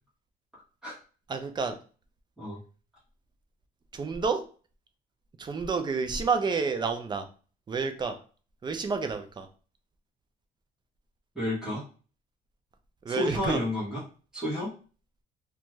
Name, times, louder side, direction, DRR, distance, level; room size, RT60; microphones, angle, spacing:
voice 1, 1.3-1.7 3.9-4.4 5.4-7.2 7.7-8.1 8.6-9.5 13.1-13.6, right 4 dB, 25° right, 6 dB, 0.5 m, -29 dB
voice 2, 11.3-11.8 13.1-14.0 14.3-14.7, left 1 dB, 5° right, -8 dB, 1.1 m, -31 dB
2.5 x 2.3 x 3.0 m, 0.38 s
cardioid pair, 110°, 17 cm